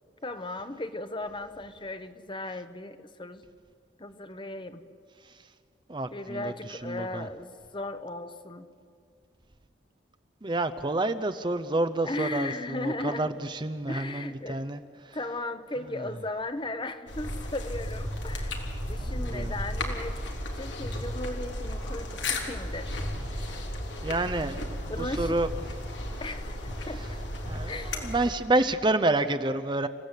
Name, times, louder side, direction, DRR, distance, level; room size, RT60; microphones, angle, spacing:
voice 1, 0.2-3.4 4.0-4.8 6.1-8.7 12.0-13.4 13.9-14.6 15.1-20.2 20.5-23.0 24.9-25.4 26.2-26.6 26.9-27.0 27.7-28.0, left 2 dB, 25° left, 10 dB, 1.0 m, -36 dB
voice 2, 5.9-7.3 10.4-15.2 19.2-19.5 23.4-23.6 24.0-25.5 27.5-29.9, right 2 dB, 25° right, 10 dB, 0.7 m, -29 dB
sound 1, 17.1-28.5, left 1 dB, 90° left, 3.2 m, -34 dB
29.5 x 16.5 x 8.3 m, 2.2 s
head